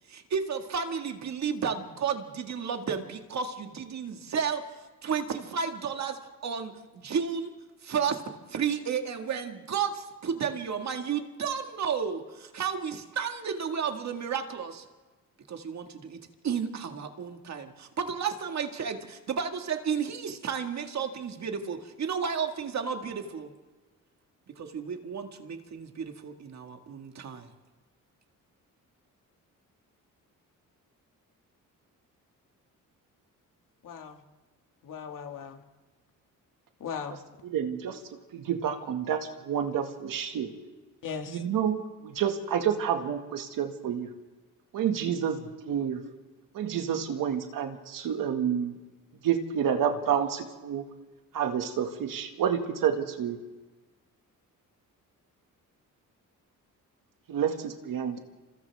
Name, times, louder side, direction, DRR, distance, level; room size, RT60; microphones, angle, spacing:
voice 1, 0.0-4.7 5.0-7.5 7.8-14.8 15.5-23.5 24.5-27.5, right 6 dB, 55° right, 5 dB, 1.9 m, -32 dB
voice 2, 33.8-34.2 34.8-35.6 36.8-37.2 41.0-41.4, left 6 dB, 70° left, 4 dB, 2.1 m, -38 dB
voice 3, 37.1-38.0 38.3-40.5 41.3-44.1 44.7-46.0 46.5-48.8 49.2-50.8 51.3-53.4 57.3-58.2, right 8 dB, 80° right, 5 dB, 2.0 m, -29 dB
29.0 x 26.0 x 3.5 m, 1.3 s
cardioid pair, 110°, 33 cm